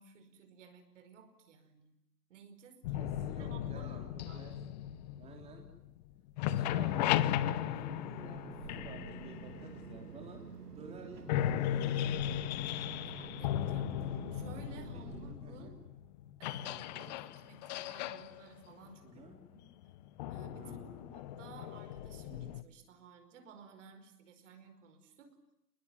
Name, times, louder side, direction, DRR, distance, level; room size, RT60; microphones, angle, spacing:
voice 1, 0.0-2.0 2.3-4.6 13.0-15.8 16.4-19.6 20.3-25.4, right 5 dB, 50° right, 8 dB, 5.1 m, -55 dB
sound 1, 2.8-6.0 6.3-10.2 10.8-10.9 11.3-22.6, left 12 dB, 25° left, 1.0 m, -36 dB
voice 2, 2.9-4.6 5.1-5.6 6.4-10.4 10.8-12.3 15.4-15.7 17.1-17.2 19.0-19.3 20.5-21.2, right 3 dB, 15° right, 2 dB, 3.6 m, -52 dB
sound 2, 6.5-15.4, right 6 dB, 75° right, 3.1 m, -49 dB
28.0 x 21.5 x 9.7 m, 0.82 s
hypercardioid pair, 135°, 47 cm